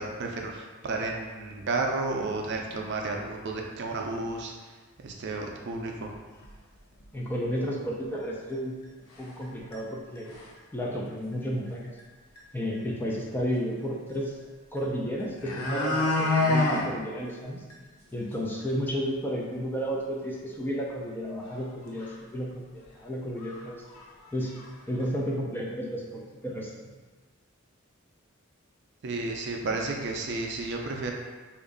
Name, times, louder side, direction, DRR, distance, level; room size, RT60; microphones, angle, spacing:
voice 1, 0.0-4.5 5.0-6.1 29.0-31.1, right 3 dB, 55° right, 1 dB, 0.4 m, -32 dB
sound 1, 6.4-6.5 7.0-7.1 7.4-7.5 8.5-8.6 9.2-9.4 9.7-9.8 10.2-10.6 12.0-12.1 12.4-12.5 14.8-14.9 15.2-16.8 17.2-17.3 17.7-17.8 18.2-18.3 18.6-18.7 21.5-21.6 22.0-22.1 22.8-22.9 23.4-23.6 23.9-24.7 25.0-25.1, left 2 dB, 85° left, 0.7 m, -27 dB
voice 2, 7.1-8.7 9.2-10.3 10.7-11.9 12.5-14.3 14.7-17.6 18.1-23.8 24.3-24.5 24.9-26.7, equal, 10° left, -3 dB, 0.3 m, -32 dB
3.0 x 2.5 x 3.7 m, 1.3 s
head